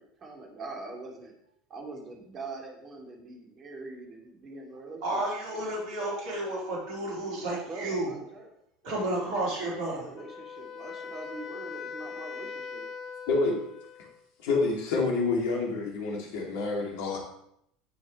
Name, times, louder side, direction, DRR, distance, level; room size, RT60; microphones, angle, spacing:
voice 1, 0.0-1.3 1.7-5.2 7.7-8.5 9.4-12.9, right 3 dB, 35° right, 1 dB, 2.8 m, -43 dB
voice 2, 5.0-8.2 8.8-10.1, right 1 dB, 55° right, -4 dB, 4.3 m, -31 dB
Wind instrument woodwind instrument, 10.2-14.2, left 6 dB, 45° left, 1.0 m, -41 dB
voice 3, 13.3-13.6 14.4-17.2, left 3 dB, 65° left, 0 dB, 2.6 m, -28 dB
16.5 x 6.3 x 3.2 m, 0.73 s
hypercardioid pair, 75°, 0 cm